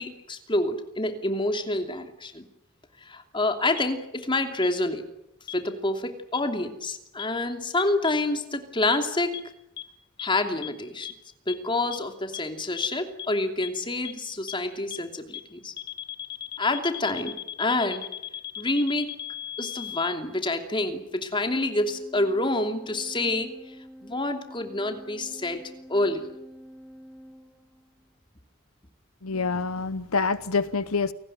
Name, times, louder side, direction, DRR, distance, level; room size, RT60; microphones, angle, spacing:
voice 1, 0.0-2.4 3.0-5.0 5.5-9.4 10.2-11.1 11.5-15.7 16.6-18.1 18.6-19.1 19.6-23.7 24.0-25.6 25.9-26.3, left 2 dB, 25° left, 6 dB, 2.9 m, -27 dB
sound 1, 3.8-3.9 4.6-4.7 5.5-5.6 6.3-6.4 7.2-7.3 8.0-8.1 8.9-9.0 9.3-9.4 9.8-9.9 10.2-10.3 10.6-10.7 11.0-11.1 11.5-11.6 11.9-12.0 12.3-12.4 12.8-12.9 13.2-13.3 13.6-13.7 14.0-14.1 14.5-14.6 14.9-15.0 15.3-15.4 15.8-20.2, left 11 dB, 50° left, 1.5 m, -36 dB
Organ, 21.6-28.2, equal, ahead, 2.1 m, -47 dB
voice 2, 29.2-31.1, left 4 dB, 80° left, 15 dB, 1.0 m, -26 dB
29.0 x 18.5 x 9.3 m, 0.83 s
head